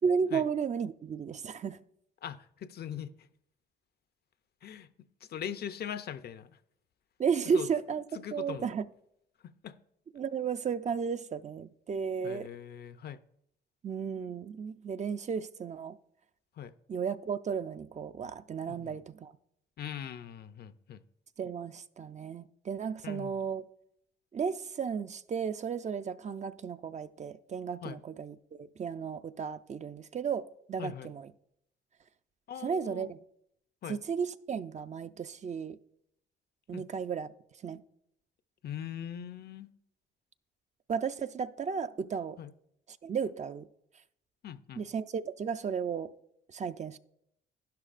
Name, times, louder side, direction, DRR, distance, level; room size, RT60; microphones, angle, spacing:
voice 1, 0.0-1.8 7.2-8.0 8.3-8.8 10.1-12.5 13.8-16.0 16.9-19.3 21.4-23.6 24.3-31.3 32.6-33.2 33.9-35.8 36.7-37.3 37.6-37.8 40.9-42.4 43.0-43.7 44.8-46.1 46.5-47.0, right 6 dB, 35° right, 0.4 m, -34 dB
voice 2, 2.2-3.1 4.6-4.9 5.3-6.5 7.5-7.7 8.1-8.7 9.6-9.7 12.2-13.2 16.6-16.7 18.7-18.9 19.8-21.0 23.0-23.4 27.8-28.0 30.8-31.1 32.5-33.1 33.8-34.0 36.7-36.8 38.6-39.7 42.4-42.5 44.4-44.8, left 9 dB, 55° left, 0.5 m, -41 dB
11.5 x 11.0 x 2.5 m
cardioid pair, 90°, 20 cm